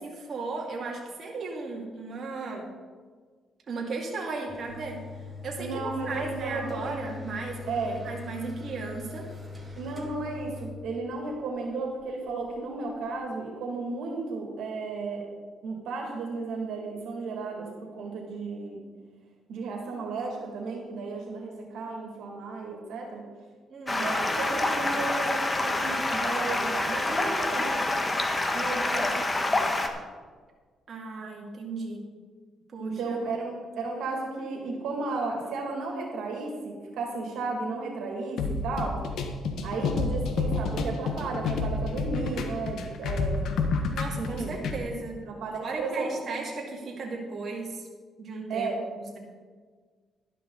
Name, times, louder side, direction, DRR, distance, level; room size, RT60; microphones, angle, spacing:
voice 1, 0.0-2.7 3.7-5.0 5.4-9.3 23.7-24.1 30.9-32.0 32.7-33.2 43.9-45.2 45.6-47.9 48.2-49.2, right 3 dB, 50° right, -1 dB, 2.3 m, -36 dB
sound 1, 4.5-13.1, left 4 dB, 20° right, 2.4 m, -42 dB
voice 2, 5.6-7.1 7.7-8.0 9.8-15.3 15.6-18.8 19.5-23.2 24.0-27.8 28.5-29.2 32.8-39.0 39.6-43.5 44.2-44.6 45.2-46.1 48.5-48.8, right 3 dB, 80° right, 1 dB, 2.4 m, -34 dB
Stream, 23.9-29.9, left 2 dB, 20° left, 1.3 m, -27 dB
sound 2, 38.4-44.8, left 4 dB, 75° left, 1.3 m, -29 dB
12.0 x 11.0 x 4.0 m, 1.5 s
cardioid pair, 90°, 0 cm